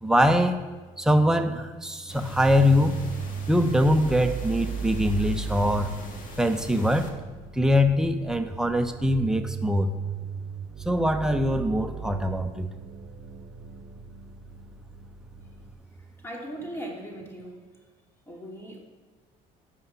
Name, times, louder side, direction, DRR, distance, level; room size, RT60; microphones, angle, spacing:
voice 1, 0.0-0.6 1.0-3.0 3.5-5.9 6.4-7.1 7.5-9.9 10.8-12.7, equal, 5° right, 6 dB, 0.9 m, -23 dB
sound 1, 2.1-7.1, left 3 dB, 50° left, 1.8 m, -43 dB
sound 2, 2.1-15.7, right 6 dB, 55° right, 1.1 m, -37 dB
voice 2, 16.2-17.6 18.3-18.8, right 1 dB, 15° left, -1 dB, 3.0 m, -38 dB
10.0 x 5.6 x 5.8 m, 1.3 s
supercardioid pair, 75°, 18 cm